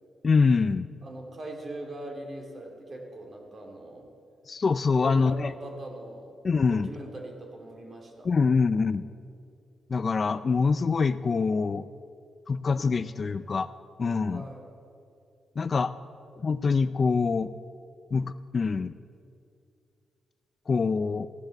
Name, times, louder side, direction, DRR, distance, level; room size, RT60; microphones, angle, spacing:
voice 1, 0.2-0.9 4.5-5.5 6.4-6.9 8.2-9.0 9.9-11.8 12.5-13.7 14.0-14.5 15.6-15.9 16.4-17.5 18.1-18.9 20.7-21.3, left 4 dB, 40° left, 13 dB, 0.4 m, -25 dB
voice 2, 1.0-4.1 5.0-6.3 6.7-8.3 14.3-14.7, right 1 dB, 45° right, 1 dB, 3.0 m, -41 dB
15.0 x 10.5 x 7.8 m, 2.4 s
cardioid pair, 100°, 0 cm